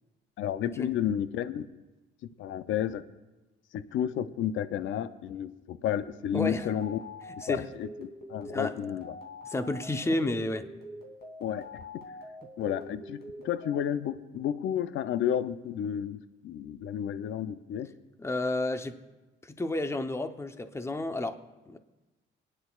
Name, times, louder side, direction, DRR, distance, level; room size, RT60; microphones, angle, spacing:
voice 1, 0.4-1.7 2.4-3.0 3.7-7.0 7.5-9.2 11.4-11.8 12.6-17.9, left 10 dB, 75° left, 13 dB, 0.6 m, -32 dB
sound 1, 6.3-13.8, left 1 dB, 55° left, 2.7 m, -45 dB
voice 2, 6.3-6.7 7.4-7.6 8.5-8.7 9.5-10.7 18.2-19.0 19.4-21.4 21.7-21.8, left 2 dB, 15° left, 9 dB, 0.8 m, -31 dB
29.5 x 10.0 x 2.4 m, 1.1 s
cardioid pair, 90°, 20 cm